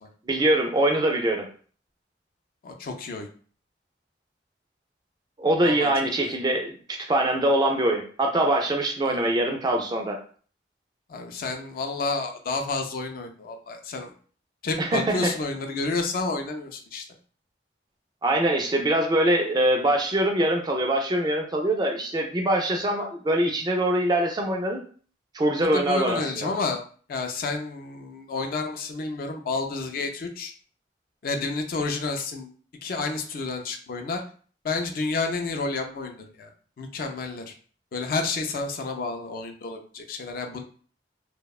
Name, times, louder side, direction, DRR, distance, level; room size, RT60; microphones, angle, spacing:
voice 1, 0.3-1.5 5.4-10.2 14.8-15.3 18.2-24.8 25.3-26.5, right 1 dB, 25° right, 2 dB, 0.3 m, -23 dB
voice 2, 2.6-3.3 5.6-5.9 6.2-6.4 9.0-9.3 11.1-14.1 14.6-17.0 25.6-26.8 27.1-30.5 31.2-32.5 32.8-34.2 34.6-36.5 36.8-37.5 37.9-40.6, left 3 dB, 50° left, 4 dB, 0.3 m, -30 dB
2.7 x 2.1 x 2.3 m, 0.43 s
head